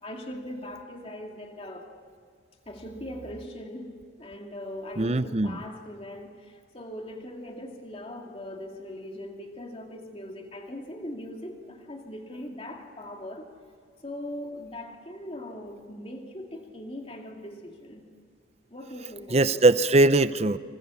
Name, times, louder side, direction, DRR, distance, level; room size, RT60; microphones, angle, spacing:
voice 1, 0.0-1.9 2.7-13.5 14.0-18.0 18.7-19.7, left 1 dB, 30° left, 2 dB, 2.3 m, -40 dB
voice 2, 5.0-5.6 19.3-20.6, right 2 dB, 35° right, 14 dB, 0.6 m, -21 dB
29.5 x 26.5 x 7.1 m, 2.1 s
head